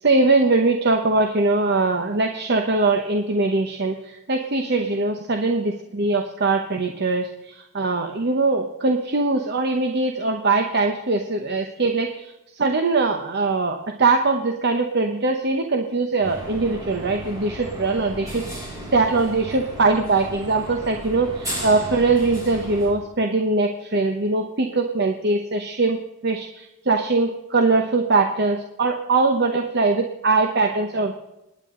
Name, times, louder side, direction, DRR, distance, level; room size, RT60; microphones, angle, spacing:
voice 1, 0.0-12.2 12.5-18.7 18.9-31.1, right 3 dB, 55° right, 4 dB, 0.9 m, -21 dB
sound 1, 16.2-22.9, right 1 dB, 15° right, 7.2 m, -35 dB
28.0 x 9.9 x 3.8 m, 0.93 s
head